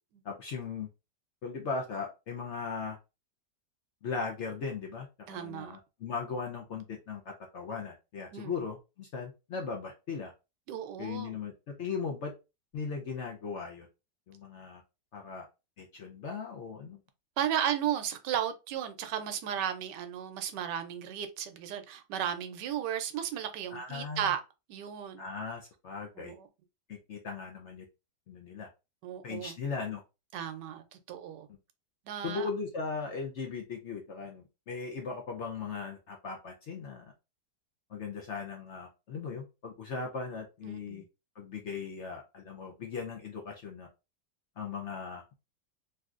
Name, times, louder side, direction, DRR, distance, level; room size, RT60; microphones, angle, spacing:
voice 1, 0.2-0.9 1.4-3.0 4.0-10.3 11.0-12.3 12.7-13.9 14.3-14.8 15.1-15.4 15.8-17.0 23.7-24.3 25.2-26.3 26.9-27.8 28.3-28.7 29.2-30.0 32.2-37.0 37.9-41.0 41.4-43.9 44.6-45.3, left 5 dB, 65° left, 0.7 m, -38 dB
voice 2, 5.3-5.8 8.3-8.6 10.7-11.4 17.4-24.4 24.7-25.3 26.2-26.5 29.0-29.5 30.3-31.5 32.1-32.5 40.6-41.0, right 9 dB, 85° right, 1.2 m, -35 dB
3.2 x 2.7 x 2.4 m
omnidirectional pair, 1.8 m